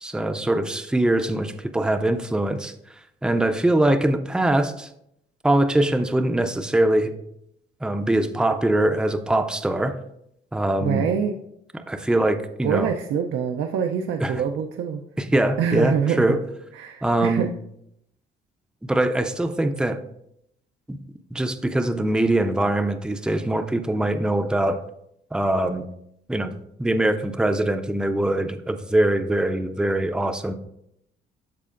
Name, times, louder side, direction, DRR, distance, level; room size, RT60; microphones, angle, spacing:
voice 1, 0.0-2.7 3.2-4.9 5.4-7.1 7.8-10.0 10.5-11.1 11.9-12.9 14.2-14.3 15.2-16.4 17.0-17.5 18.8-20.0 20.9-21.0 21.3-24.8 25.3-25.9 26.3-26.5 26.8-30.5, right 1 dB, 5° right, 7 dB, 0.5 m, -22 dB
voice 2, 10.8-11.3 12.6-15.0 15.6-16.4 16.7-17.5, right 7 dB, 85° right, 4 dB, 0.5 m, -25 dB
12.5 x 4.2 x 2.5 m, 0.76 s
cardioid pair, 90°, 20 cm